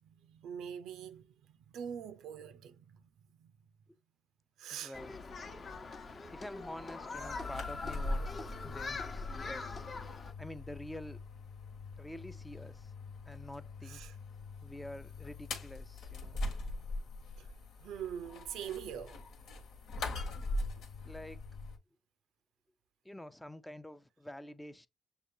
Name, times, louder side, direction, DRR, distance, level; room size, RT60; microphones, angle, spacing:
voice 1, 0.0-3.1 3.4-3.5 4.6-4.9 13.9-14.1 17.4-17.5 17.8-19.2, right 8 dB, 85° right, 0.5 m, -44 dB
voice 2, 4.7-5.2 6.3-9.9 10.4-11.2 12.0-12.9 13.3-14.0 14.6-16.4 21.0-21.4 23.0-24.9, left 1 dB, 10° left, 0.4 m, -48 dB
Human group actions, 4.9-10.3, left 3 dB, 40° left, 0.9 m, -43 dB
sound 1, 7.2-21.8, left 2 dB, 80° left, 1.4 m, -42 dB
6.7 x 2.3 x 2.7 m
cardioid pair, 90°, 0 cm